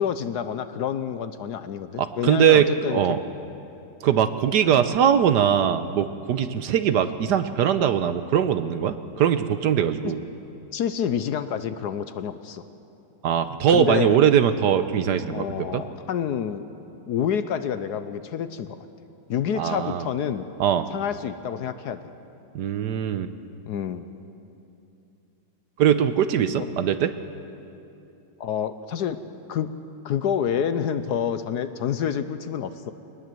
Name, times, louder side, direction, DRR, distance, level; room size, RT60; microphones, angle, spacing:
voice 1, 0.0-3.2 10.0-10.1 10.7-12.6 13.7-14.2 15.3-16.6 17.1-18.8 19.3-20.5 20.9-22.0 23.7-24.1 26.6-26.7 28.4-29.2 29.5-29.7 30.0-32.9, left 8 dB, 65° left, 11 dB, 1.2 m, -28 dB
voice 2, 2.0-3.2 4.0-10.2 13.2-15.5 15.7-15.8 19.6-20.0 20.6-20.9 22.5-23.3 25.8-27.1, right 9 dB, 65° right, 11 dB, 1.2 m, -21 dB
23.0 x 19.5 x 7.7 m, 2.8 s
omnidirectional pair, 2.1 m